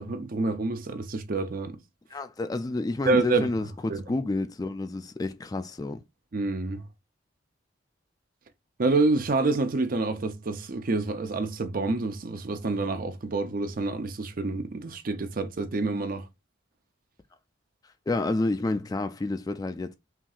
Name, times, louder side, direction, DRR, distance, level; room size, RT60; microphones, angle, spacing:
voice 1, 0.0-1.8 3.0-3.5 3.9-4.0 6.3-6.9 8.8-16.3, right 3 dB, 50° right, 0.6 m, -27 dB
voice 2, 2.1-6.0 18.1-19.9, left 2 dB, 20° left, 0.3 m, -29 dB
5.7 x 2.7 x 2.4 m
head